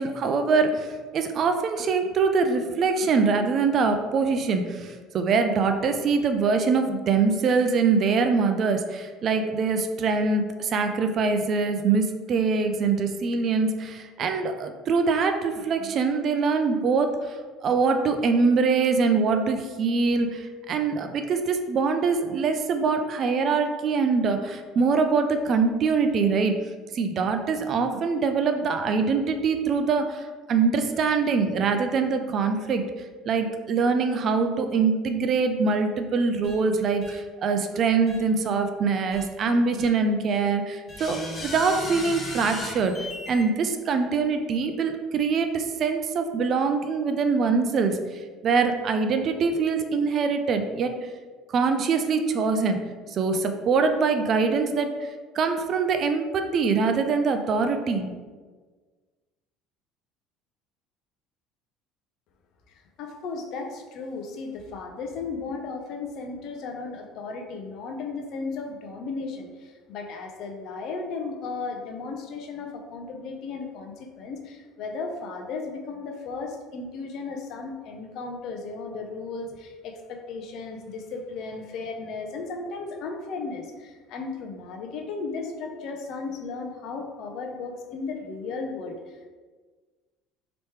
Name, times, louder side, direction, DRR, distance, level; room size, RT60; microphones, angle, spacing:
voice 1, 0.0-17.4 17.6-26.6 26.9-32.8 33.2-48.0 48.4-50.9 51.5-52.8 53.1-55.1 55.3-58.1, right 4 dB, 50° right, 6 dB, 0.4 m, -24 dB
sound 1, 36.4-36.6 37.0-37.1 38.1-38.2 39.1-39.2 39.8-39.9 40.9-43.4, left 1 dB, 30° left, 0.8 m, -35 dB
voice 2, 62.7-89.3, left 4 dB, 65° left, 3 dB, 0.5 m, -35 dB
3.0 x 3.0 x 3.2 m, 1.4 s
supercardioid pair, 85°, 0 cm